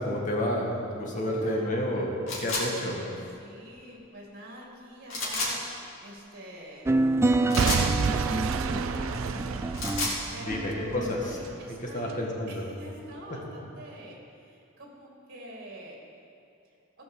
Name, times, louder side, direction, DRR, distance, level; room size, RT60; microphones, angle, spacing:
voice 1, 0.0-2.1 2.4-3.0 10.4-11.4 11.9-12.7, left 1 dB, 40° left, -2 dB, 2.0 m, -30 dB
voice 2, 1.1-2.1 2.5-7.0 7.4-16.0, equal, 50° right, -2 dB, 2.5 m, -46 dB
sound 1, 2.3-2.7 5.1-5.5 7.5-7.9 9.6-10.2, left 2 dB, 80° left, 2.4 m, -30 dB
sound 2, 6.9-11.4, right 2 dB, 15° right, 0.4 m, -28 dB
Boom / Shatter / Crushing, 7.6-11.6 12.1-12.2, right 6 dB, 75° right, 0.4 m, -30 dB
15.5 x 6.0 x 7.3 m, 2.7 s
head